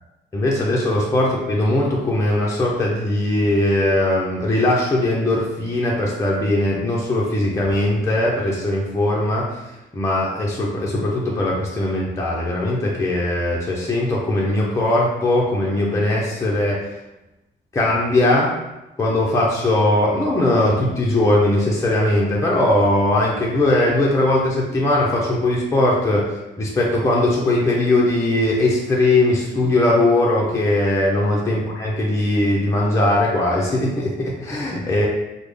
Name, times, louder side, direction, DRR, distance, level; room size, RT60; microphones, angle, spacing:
voice 1, 0.3-9.6 9.9-16.8 17.7-18.5 19.0-35.1, left 1 dB, 15° left, -4 dB, 0.6 m, -20 dB
3.4 x 2.1 x 3.4 m, 0.97 s
cardioid pair, 90°, 20 cm